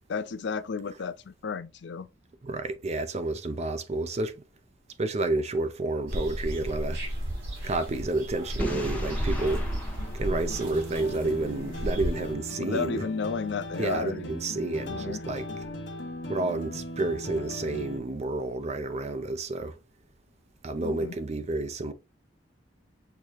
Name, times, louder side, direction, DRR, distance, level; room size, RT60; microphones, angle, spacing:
voice 1, 0.1-2.1 12.6-14.2 14.8-15.2 20.8-21.2, left 5 dB, 65° left, 0.4 m, -33 dB
voice 2, 2.4-4.4 5.0-7.0 7.6-9.7 10.1-13.0 13.8-15.5 16.3-19.7 20.6-21.9, right 2 dB, 35° right, 0.5 m, -30 dB
sound 1, 6.1-12.3, equal, 75° right, 2.3 m, -33 dB
Boom, 8.6-11.5, left 1 dB, 10° left, 1.0 m, -38 dB
sound 2, 10.0-18.0, equal, 85° left, 1.4 m, -38 dB
6.5 x 2.7 x 2.9 m
head